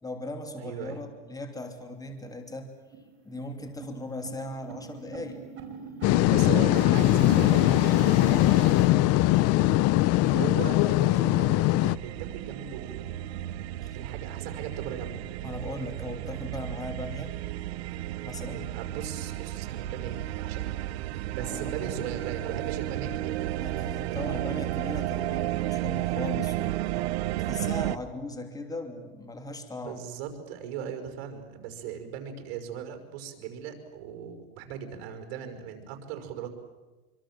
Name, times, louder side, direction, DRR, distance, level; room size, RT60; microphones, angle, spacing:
voice 1, 0.0-2.7 3.2-5.4 6.4-6.6 8.9-9.2 13.8-14.0 15.4-17.4 18.2-18.6 21.4-22.0 23.6-26.8 27.4-30.0, left 1 dB, 10° left, 5 dB, 3.0 m, -38 dB
voice 2, 0.5-1.0 6.2-8.0 10.3-11.7 12.0-13.2 13.9-15.3 18.4-20.8 21.3-23.4 29.9-36.5, right 8 dB, 60° right, 6 dB, 5.5 m, -38 dB
sound 1, 1.6-1.7 2.0-2.1 2.5-2.7 2.9-8.9, right 6 dB, 40° right, 4.9 m, -39 dB
sound 2, 6.0-12.0, left 16 dB, 50° left, 0.7 m, -21 dB
sound 3, 11.8-28.0, right 15 dB, 90° right, 0.8 m, -33 dB
26.0 x 24.5 x 7.7 m, 1.2 s
supercardioid pair, 125°, 31 cm